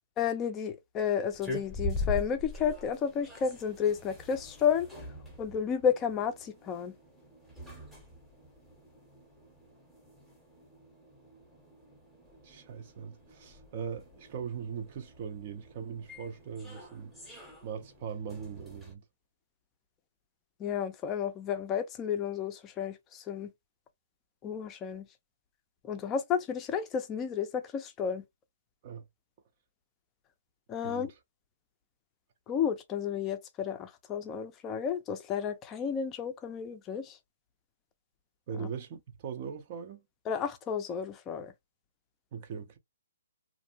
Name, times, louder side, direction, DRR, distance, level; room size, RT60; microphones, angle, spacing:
voice 1, 0.2-4.9 5.4-6.9 20.6-23.5 24.4-25.1 25.8-28.2 30.7-31.1 32.5-37.2 40.3-41.5, left 7 dB, 20° left, 0.5 m, -32 dB
sound 1, 1.3-18.9, left 2 dB, ahead, 0.8 m, -43 dB
voice 2, 12.4-17.1 17.6-19.0 28.8-29.0 30.8-31.2 38.5-40.0 42.3-42.8, right 7 dB, 40° right, 0.5 m, -40 dB
2.5 x 2.0 x 2.8 m
hypercardioid pair, 145°, 0 cm